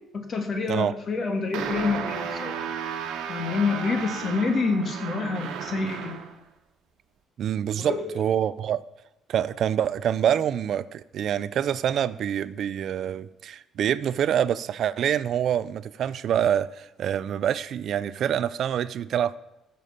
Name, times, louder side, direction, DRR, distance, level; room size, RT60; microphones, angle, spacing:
voice 1, 0.1-2.6 3.3-6.2 7.8-8.2, left 4 dB, 35° left, 4 dB, 1.8 m, -27 dB
sound 1, 1.5-6.4, right 7 dB, 75° right, 1.3 m, -34 dB
voice 2, 7.4-8.8 9.3-19.4, right 9 dB, 50° right, 16 dB, 0.4 m, -26 dB
14.5 x 6.9 x 5.6 m, 0.92 s
cardioid pair, 160°, 0 cm